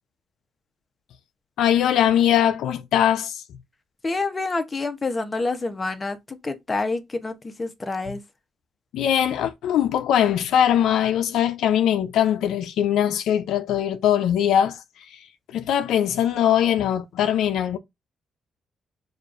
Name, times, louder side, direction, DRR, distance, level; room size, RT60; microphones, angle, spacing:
voice 1, 1.6-3.4 8.9-14.8 15.1-15.2 15.5-17.8, left 10 dB, 80° left, 0.4 m, -21 dB
voice 2, 4.0-8.2, left 3 dB, 25° left, 0.8 m, -28 dB
6.3 x 2.5 x 2.5 m
cardioid pair, 90°, 0 cm